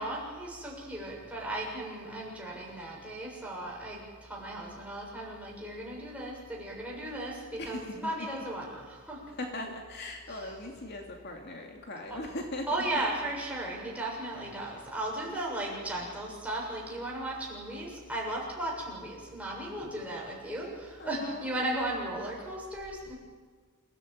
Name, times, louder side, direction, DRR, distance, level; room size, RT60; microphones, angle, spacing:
voice 1, 0.0-9.2 10.3-10.5 12.1-12.2 12.7-23.1, right 1 dB, 5° right, -4 dB, 7.1 m, -36 dB
voice 2, 7.6-8.3 9.4-12.7 21.0-21.6, left 1 dB, 50° left, 1 dB, 2.6 m, -39 dB
28.5 x 17.5 x 9.0 m, 1.5 s
head